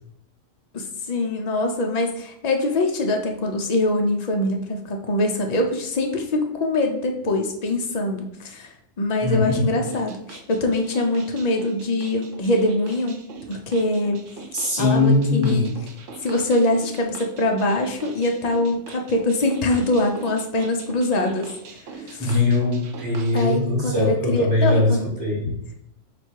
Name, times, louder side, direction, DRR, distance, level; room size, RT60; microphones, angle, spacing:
voice 1, 0.7-13.2 13.5-14.2 14.8-15.7 16.2-21.5 21.9-22.4 23.3-25.1, left 1 dB, 75° left, 2 dB, 0.3 m, -23 dB
voice 2, 9.2-9.7 14.5-15.6 22.2-25.5, left 2 dB, 15° left, -4 dB, 1.0 m, -21 dB
sound 1, 9.9-23.6, right 4 dB, 70° right, 1.0 m, -42 dB
4.1 x 2.3 x 4.5 m, 0.75 s
omnidirectional pair, 1.4 m